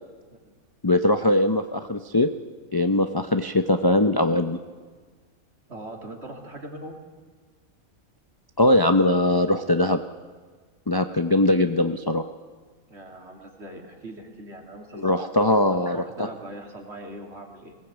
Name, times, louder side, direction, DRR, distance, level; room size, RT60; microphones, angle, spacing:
voice 1, 0.8-2.3 2.7-4.6 8.6-10.0 10.9-12.3 15.0-16.0, left 1 dB, 25° left, 7 dB, 0.5 m, -21 dB
voice 2, 5.7-7.0 12.9-15.3 15.8-17.8, right 1 dB, 50° right, 1 dB, 3.1 m, -40 dB
20.5 x 19.0 x 8.2 m, 1.5 s
omnidirectional pair, 1.5 m